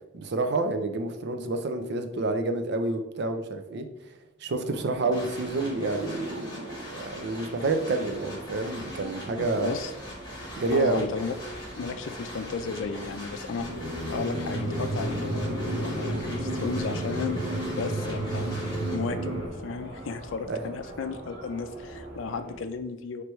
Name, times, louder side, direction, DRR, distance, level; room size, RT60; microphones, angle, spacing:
voice 1, 0.1-3.9 4.4-9.8 10.6-11.1 20.5-20.6, right 3 dB, 60° right, 7 dB, 0.5 m, -28 dB
sound 1, 4.6-22.6, right 1 dB, 45° right, 1.3 m, -43 dB
sound 2, 5.1-19.0, left 1 dB, 25° left, 1.3 m, -43 dB
voice 2, 9.4-9.9 10.7-11.4 11.8-13.7 14.1-17.4 17.8-18.5 18.9-19.4 19.6-23.2, left 5 dB, 85° left, 10 dB, 0.4 m, -34 dB
sound 3, 13.5-19.5, right 1 dB, 80° right, 0.9 m, -31 dB
4.5 x 3.3 x 3.0 m, 0.98 s
head